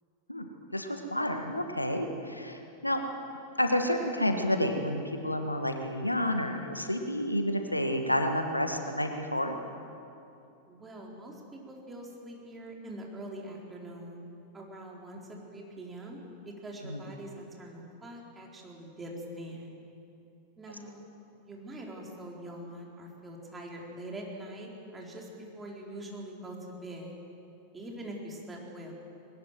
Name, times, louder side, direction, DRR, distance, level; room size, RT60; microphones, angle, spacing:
voice 1, 0.7-3.0 3.6-9.5 16.8-17.0, left 1 dB, 85° left, 5 dB, 1.6 m, -30 dB
voice 2, 10.7-14.2 14.5-19.7 20.6-21.1 21.4-27.1 27.7-28.9, right 1 dB, 15° right, -1 dB, 4.5 m, -43 dB
21.5 x 19.5 x 7.7 m, 2.7 s
figure-of-eight pair, 90°, 0 cm